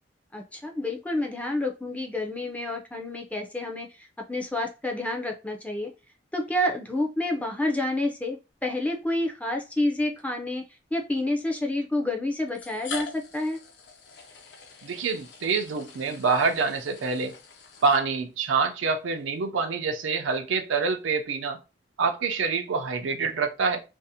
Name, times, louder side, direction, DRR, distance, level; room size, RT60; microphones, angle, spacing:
voice 1, 0.3-5.9 6.3-10.6 10.9-13.6, left 1 dB, 10° left, 0.3 m, -29 dB
sound 1, 9.0-9.2 10.2-10.3 11.4-11.5 12.5-18.5, left 4 dB, 60° left, 0.5 m, -43 dB
voice 2, 14.8-17.3 17.8-21.6 22.0-23.8, right 4 dB, 90° right, 0.5 m, -26 dB
2.5 x 2.0 x 2.7 m
head